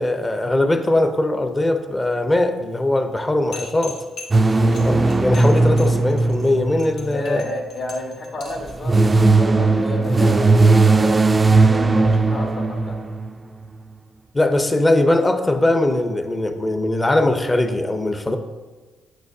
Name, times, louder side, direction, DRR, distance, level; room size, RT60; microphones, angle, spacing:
voice 1, 0.0-4.0 4.8-7.4 14.3-18.4, left 1 dB, 20° left, 7 dB, 0.7 m, -20 dB
sound 1, 3.5-8.7, left 4 dB, 75° left, 1.4 m, -39 dB
sound 2, 4.3-7.7 8.6-13.4, right 3 dB, 25° right, 0.3 m, -17 dB
voice 2, 7.1-9.0 9.4-11.3 11.6-13.0, left 2 dB, 50° left, 1 dB, 1.4 m, -30 dB
8.9 x 6.2 x 2.7 m, 1.3 s
cardioid pair, 90°, 0 cm